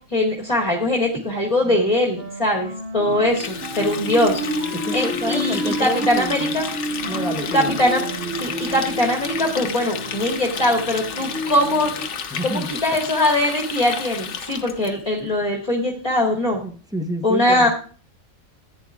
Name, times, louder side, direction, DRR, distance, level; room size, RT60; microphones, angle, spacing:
voice 1, 0.1-4.4 4.9-6.7 7.5-8.0 8.4-11.9 12.4-16.6 17.2-17.7, left 1 dB, 25° left, -1 dB, 1.7 m, -21 dB
Wind instrument woodwind instrument, 1.6-9.1, right 1 dB, 65° right, 2.1 m, -34 dB
sound 1, 3.0-12.1, right 1 dB, 50° right, 1.2 m, -30 dB
Water tap faucet, 3.3-14.9, left 7 dB, 70° left, 1.2 m, -32 dB
voice 2, 4.7-6.6 7.1-7.9 12.3-12.8 16.6-17.7, right 1 dB, 5° right, 6 dB, 0.8 m, -29 dB
15.0 x 9.3 x 2.4 m, 0.41 s
omnidirectional pair, 1.3 m